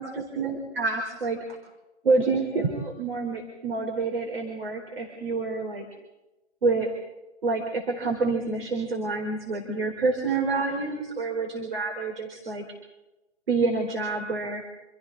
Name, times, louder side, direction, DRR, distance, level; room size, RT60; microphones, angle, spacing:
voice 1, 0.0-1.6 2.0-5.8 6.6-6.9 7.4-12.6 13.5-14.6, right 3 dB, 50° right, 2 dB, 4.2 m, -27 dB
29.0 x 28.0 x 4.1 m, 1.0 s
figure-of-eight pair, 145°, 36 cm